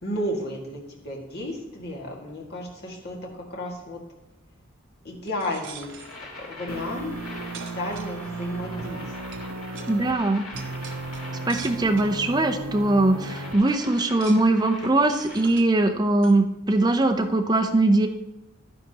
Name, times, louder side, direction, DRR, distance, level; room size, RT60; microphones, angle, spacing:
voice 1, 0.0-4.0 5.0-5.9 6.4-7.1 7.7-9.1, left 1 dB, 50° left, -2 dB, 1.9 m, -33 dB
sound 1, 5.3-6.2 7.1-7.2 7.5-8.5 9.3-9.5 9.7-9.9 10.6-12.2 12.8-12.9 13.2-13.4 13.7-14.6 15.1-15.7 16.2-16.4, right 6 dB, 60° right, 0.9 m, -43 dB
sound 2, 5.9-15.4, left 2 dB, 85° left, 2.3 m, -43 dB
sound 3, 6.7-10.1 10.5-13.5, right 2 dB, 85° right, 0.7 m, -35 dB
voice 2, 9.9-10.5 11.5-18.1, right 2 dB, 20° right, 5 dB, 0.6 m, -21 dB
11.0 x 10.0 x 2.9 m, 0.92 s
head